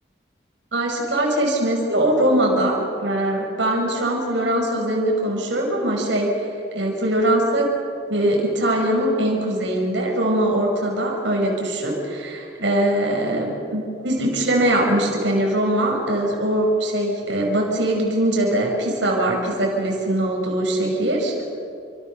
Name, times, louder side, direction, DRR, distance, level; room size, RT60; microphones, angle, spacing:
voice 1, 0.7-6.5 6.7-7.7 8.1-21.3, right 1 dB, 85° right, -1 dB, 6.0 m, -21 dB
30.0 x 26.5 x 6.8 m, 2.4 s
head